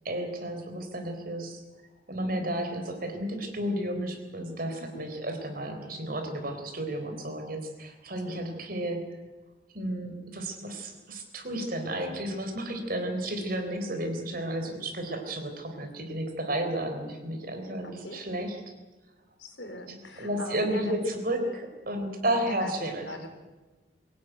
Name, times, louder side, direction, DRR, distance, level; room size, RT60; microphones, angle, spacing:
voice 1, 0.0-1.6 2.1-9.0 9.7-18.6 20.2-23.1, right 1 dB, 45° right, 5 dB, 4.0 m, -32 dB
voice 2, 19.4-21.1 21.4-21.6 22.5-22.7 23.0-23.3, left 2 dB, 60° left, 5 dB, 4.2 m, -40 dB
23.0 x 17.0 x 9.4 m, 1.2 s
head